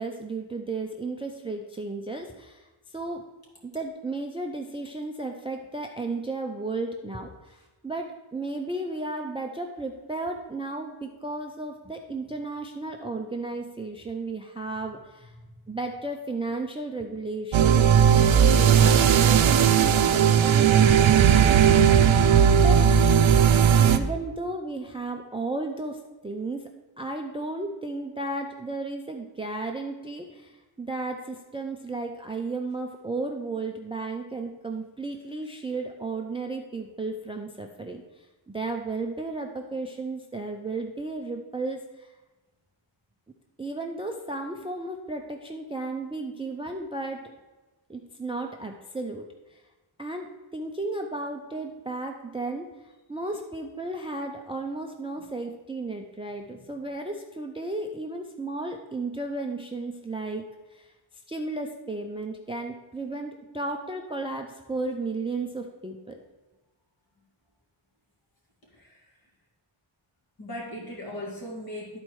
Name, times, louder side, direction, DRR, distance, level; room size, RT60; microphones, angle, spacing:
voice 1, 0.0-3.2 3.6-15.3 15.7-22.0 22.6-22.8 23.8-38.0 38.5-42.1 43.6-47.2 47.9-49.6 50.0-52.7 53.1-60.4 60.7-60.9 61.3-66.2, right 3 dB, 10° right, 3 dB, 0.4 m, -34 dB
sound 1, 17.5-24.0, right 8 dB, 70° right, 0.6 m, -17 dB
voice 2, 70.4-72.0, left 1 dB, 45° left, -3 dB, 2.2 m, -38 dB
11.0 x 4.3 x 4.6 m, 1.2 s
wide cardioid pair, 175°, 49 cm